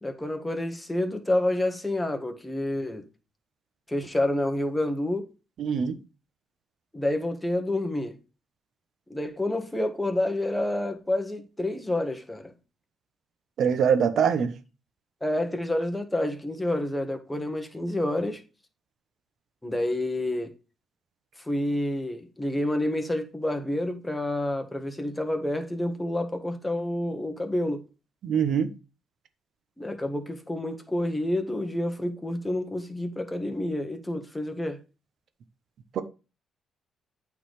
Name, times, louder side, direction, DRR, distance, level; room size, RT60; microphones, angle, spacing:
voice 1, 0.0-3.1 3.9-5.3 6.9-8.2 9.1-12.5 15.2-18.4 19.6-20.5 21.4-27.8 29.8-34.8, left 1 dB, 10° left, 1.6 m, -28 dB
voice 2, 5.6-6.0 13.6-14.5 28.2-28.7 35.9-36.0, right 7 dB, 65° right, 1.1 m, -23 dB
8.8 x 4.2 x 4.8 m
cardioid pair, 90°, 0 cm